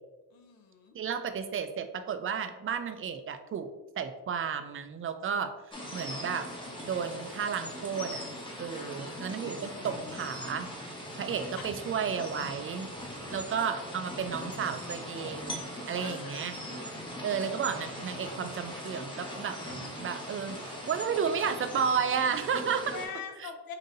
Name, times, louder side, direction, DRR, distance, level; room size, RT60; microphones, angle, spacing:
voice 1, 0.3-0.9 8.7-9.2 11.5-11.6 16.0-16.9 22.9-23.7, left 6 dB, 75° left, 5 dB, 0.7 m, -44 dB
voice 2, 0.9-3.7 4.0-5.5 5.9-6.5 6.8-8.2 8.6-10.7 11.2-12.9 13.3-16.6 17.2-23.0 23.4-23.5, right 7 dB, 40° right, 9 dB, 0.4 m, -32 dB
sound 1, 5.7-23.1, equal, 15° left, 0.9 m, -40 dB
5.4 x 2.7 x 2.6 m, 1.1 s
cardioid pair, 105°, 36 cm